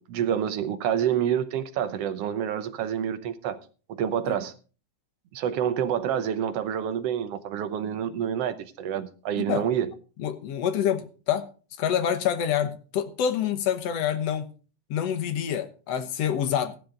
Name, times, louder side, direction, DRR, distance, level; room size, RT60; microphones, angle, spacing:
voice 1, 0.0-3.6 3.9-4.5 5.3-9.9, right 9 dB, 70° right, 1.5 m, -28 dB
voice 2, 9.4-9.7 10.2-11.5 11.8-14.5 14.9-16.7, left 9 dB, 65° left, 1.9 m, -27 dB
14.5 x 11.5 x 3.9 m
omnidirectional pair, 3.7 m